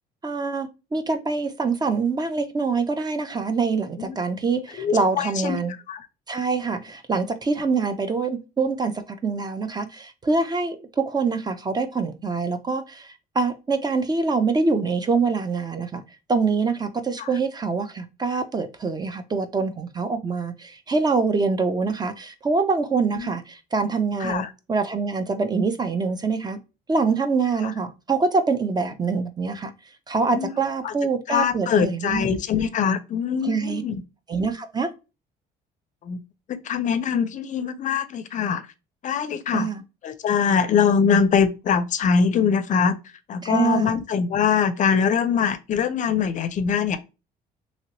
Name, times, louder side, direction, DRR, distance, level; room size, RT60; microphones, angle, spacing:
voice 1, 0.2-5.7 6.3-16.0 16.3-24.4 24.7-26.6 26.9-29.7 30.1-32.3 33.4-33.8 34.3-34.9 39.5-39.8 43.4-43.9, right 4 dB, 25° right, 0.5 m, -25 dB
voice 2, 4.8-5.6 5.9-6.1 17.2-17.3 23.1-23.3 24.2-24.5 27.6-27.7 30.3-30.5 30.8-30.9 31.3-34.0 36.0-36.2 36.5-38.7 39.0-39.7 40.0-43.0 43.3-47.0, left 6 dB, 45° left, 0.4 m, -23 dB
2.9 x 2.9 x 2.8 m
cardioid pair, 110°, 17 cm